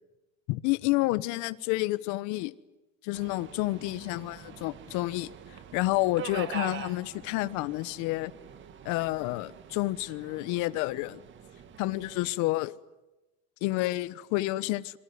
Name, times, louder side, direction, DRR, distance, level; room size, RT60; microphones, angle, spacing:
voice 1, 0.5-2.5 3.0-5.3 5.7-8.3 8.8-11.2 11.8-12.7 13.6-14.8, left 19 dB, 60° left, 1.2 m, -29 dB
Subway metro underground, 3.1-12.3, right 9 dB, 35° right, 2.0 m, -44 dB
27.0 x 23.0 x 9.5 m
cardioid pair, 155°, 34 cm